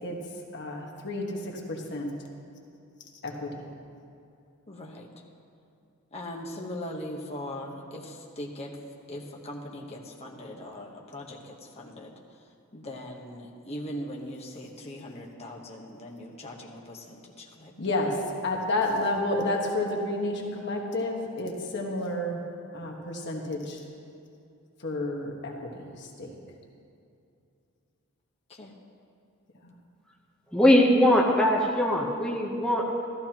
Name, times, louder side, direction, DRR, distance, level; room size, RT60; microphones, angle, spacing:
voice 1, 0.5-2.1 3.2-3.7 17.8-22.4 22.7-23.8 24.8-26.4 29.6-29.7, left 1 dB, 55° left, 0 dB, 1.4 m, -30 dB
voice 2, 4.7-5.1 6.1-8.8 9.1-12.1 12.7-17.7 28.5-28.7, left 1 dB, 30° left, -1 dB, 1.1 m, -40 dB
voice 3, 30.5-33.1, left 1 dB, 5° left, -3 dB, 0.8 m, -21 dB
14.0 x 13.5 x 2.9 m, 2.5 s
head